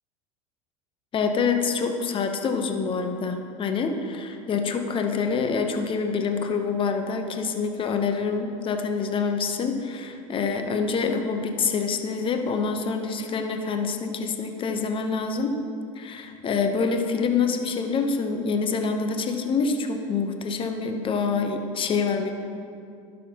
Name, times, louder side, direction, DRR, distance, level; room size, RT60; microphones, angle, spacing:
voice 1, 1.1-15.6 16.0-22.3, left 5 dB, 30° left, 5 dB, 0.8 m, -26 dB
12.0 x 6.4 x 2.9 m, 2.4 s
hypercardioid pair, 95°, 18 cm